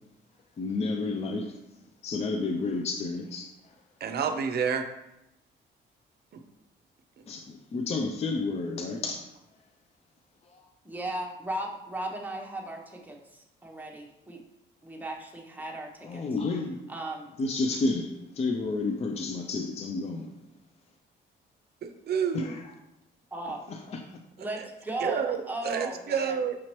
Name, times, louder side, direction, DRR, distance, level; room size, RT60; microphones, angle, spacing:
voice 1, 0.6-1.6 2.0-3.7 7.3-9.2 10.5-10.6 16.0-16.8 17.4-20.3 22.3-22.6 23.7-24.0, left 3 dB, 30° left, 0.4 m, -31 dB
voice 2, 4.0-4.9 21.8-22.5 25.0-26.6, right 7 dB, 55° right, 0.6 m, -29 dB
voice 3, 10.8-14.4 14.8-16.2 16.9-17.3 23.3-23.6 24.4-26.4, right 1 dB, 10° right, 0.8 m, -36 dB
6.0 x 2.8 x 3.0 m
cardioid pair, 90°, 20 cm